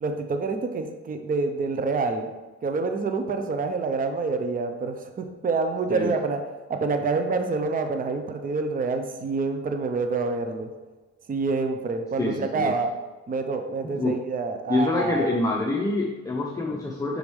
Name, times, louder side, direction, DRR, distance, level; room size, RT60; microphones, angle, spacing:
voice 1, 0.0-2.3 2.6-6.4 6.7-10.7 11.3-12.9 13.3-15.4, right 4 dB, 30° right, 6 dB, 0.6 m, -27 dB
voice 2, 12.2-12.7 13.9-14.1 14.7-17.2, left 2 dB, 10° left, -3 dB, 0.7 m, -26 dB
6.2 x 5.1 x 3.2 m, 1.2 s
cardioid pair, 90°, 30 cm